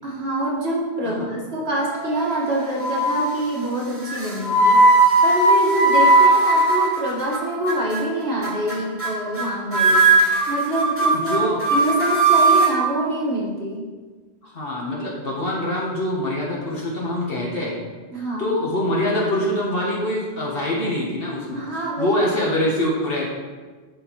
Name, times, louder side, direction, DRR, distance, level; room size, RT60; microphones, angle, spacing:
voice 1, 0.0-4.8 5.2-10.1 10.5-13.8 18.1-18.6 21.5-22.2, right 1 dB, 70° right, -4 dB, 1.9 m, -25 dB
sound 1, 1.8-2.4 2.8-3.3 4.1-7.4 7.7-8.0 8.4-8.7 9.0-9.5 9.7-12.7, right 2 dB, 15° right, 1.1 m, -17 dB
voice 2, 11.1-11.7 14.4-17.8 18.4-23.3, left 1 dB, 60° left, -4 dB, 1.3 m, -24 dB
11.0 x 4.2 x 3.0 m, 1.4 s
omnidirectional pair, 1.1 m